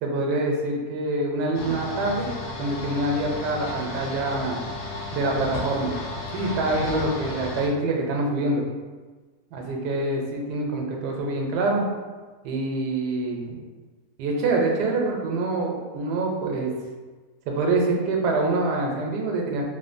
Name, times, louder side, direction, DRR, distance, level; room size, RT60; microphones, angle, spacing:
voice 1, 0.0-2.3 2.6-4.6 5.1-5.9 6.3-8.6 9.5-11.9 12.4-13.6 14.2-16.7 17.5-19.6, right 2 dB, 90° right, 0 dB, 1.2 m, -25 dB
sound 1, 1.5-7.7, left 2 dB, 80° left, 1.1 m, -33 dB
3.1 x 2.1 x 2.4 m, 1.3 s
omnidirectional pair, 1.7 m